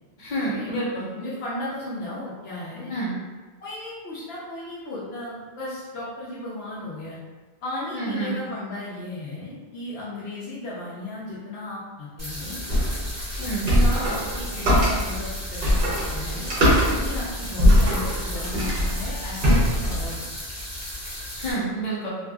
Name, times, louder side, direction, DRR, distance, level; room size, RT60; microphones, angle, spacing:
voice 1, 0.2-1.1 2.9-3.1 7.9-8.3 13.4-13.7 21.4-22.1, right 2 dB, 50° left, -7 dB, 0.9 m, -28 dB
voice 2, 1.1-3.0 3.6-7.2 7.6-12.6 13.4-20.3, left 1 dB, 75° left, -7 dB, 0.8 m, -35 dB
sound 1, 12.2-21.5, left 1 dB, 15° right, 1.3 m, -35 dB
sound 2, 12.7-20.1, equal, 60° right, 0.9 m, -22 dB
2.7 x 2.5 x 2.3 m, 1.3 s
omnidirectional pair, 1.1 m